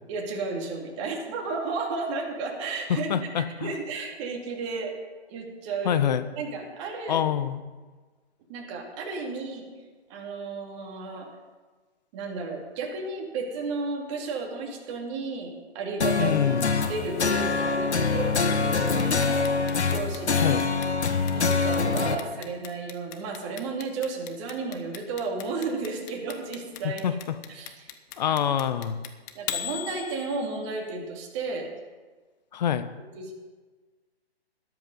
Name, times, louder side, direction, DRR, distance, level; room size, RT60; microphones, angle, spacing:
voice 1, 0.1-5.0 5.3-6.0 6.3-7.2 8.5-9.7 10.1-11.3 12.1-16.4 16.9-19.5 19.9-20.6 21.3-27.2 27.5-27.9 28.3-28.4 29.3-31.7 33.2-33.3, right 4 dB, 30° right, 1 dB, 2.6 m, -33 dB
voice 2, 2.9-3.7 5.8-6.3 7.1-7.6 16.2-16.7 20.4-20.6 26.8-27.1 28.2-29.0 32.5-32.9, left 9 dB, 40° left, 12 dB, 1.0 m, -26 dB
sound 1, 16.0-22.1, left 4 dB, 80° left, 1.5 m, -25 dB
Clock, 18.8-30.7, left 11 dB, 15° left, 0.6 m, -38 dB
13.0 x 11.0 x 5.4 m, 1.3 s
hypercardioid pair, 145°, 33 cm